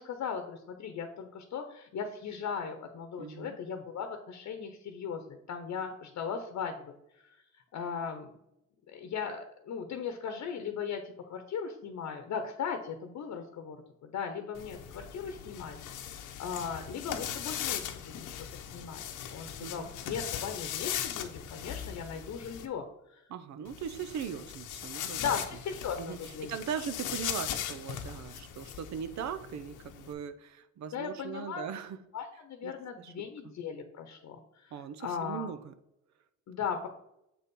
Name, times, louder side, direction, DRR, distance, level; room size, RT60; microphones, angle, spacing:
voice 1, 0.0-6.9 7.3-7.4 7.7-8.3 8.9-13.8 14.0-15.8 16.0-18.3 18.5-19.0 19.3-22.8 23.1-23.2 25.2-26.5 30.9-31.6 32.1-35.5 36.5-36.9, left 6 dB, 65° left, 6 dB, 0.9 m, -38 dB
voice 2, 3.2-3.6 19.6-19.9 23.3-25.2 26.0-32.0 32.6-32.7 33.0-33.1 34.7-35.7, right 8 dB, 65° right, 11 dB, 0.6 m, -39 dB
sound 1, 14.5-22.7 23.7-30.1, left 10 dB, 85° left, 0.8 m, -39 dB
7.6 x 4.2 x 5.4 m, 0.82 s
cardioid pair, 90°, 30 cm